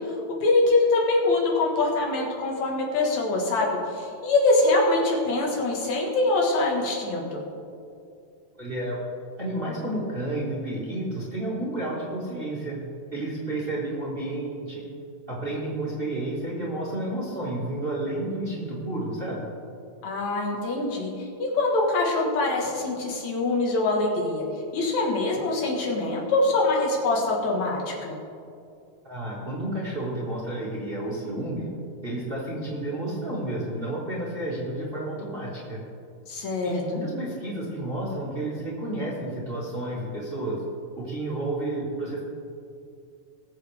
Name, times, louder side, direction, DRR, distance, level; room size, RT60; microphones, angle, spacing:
voice 1, 0.1-3.7 3.9-7.4 20.0-24.4 24.7-28.1 36.3-37.0, left 2 dB, 70° left, -1 dB, 2.9 m, -24 dB
voice 2, 8.6-9.0 9.4-12.8 13.1-14.9 15.3-19.5 29.0-31.7 32.0-35.8 36.6-40.6 40.9-42.2, right 1 dB, 20° right, -6 dB, 1.7 m, -31 dB
20.5 x 7.2 x 3.5 m, 2.5 s
omnidirectional pair, 3.4 m